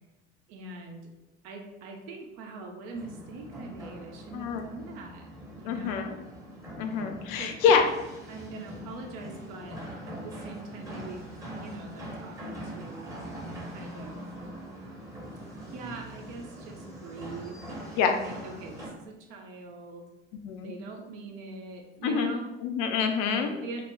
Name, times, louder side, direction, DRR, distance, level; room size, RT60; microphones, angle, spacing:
voice 1, 0.5-1.1 1.4-5.3 5.6-6.2 7.4-7.8 8.3-13.1 13.7-14.2 15.6-17.6 17.9-20.1 20.6-22.5 23.3-23.8, right 3 dB, 55° right, 2 dB, 0.6 m, -42 dB
sound 1, 2.9-18.9, equal, 10° right, 0.8 m, -42 dB
voice 2, 5.7-6.1 6.8-7.8 12.4-12.5 18.0-18.2 20.4-20.7 22.0-22.3 22.6-23.5, left 6 dB, 55° left, 5 dB, 0.4 m, -26 dB
2.2 x 2.1 x 3.4 m, 0.98 s
figure-of-eight pair, 65°, 31 cm